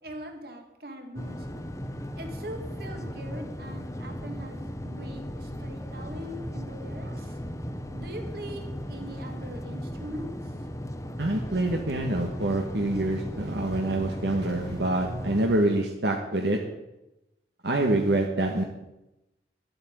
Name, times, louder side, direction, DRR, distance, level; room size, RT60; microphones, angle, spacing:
voice 1, 0.0-1.6 2.2-7.4 7.9-10.5, equal, 55° right, 4 dB, 2.3 m, -42 dB
sound 1, 1.2-15.5, equal, 15° left, 0.9 m, -36 dB
voice 2, 11.2-16.6 17.6-18.6, right 1 dB, 75° right, 1 dB, 1.6 m, -26 dB
12.0 x 8.8 x 8.9 m, 0.94 s
head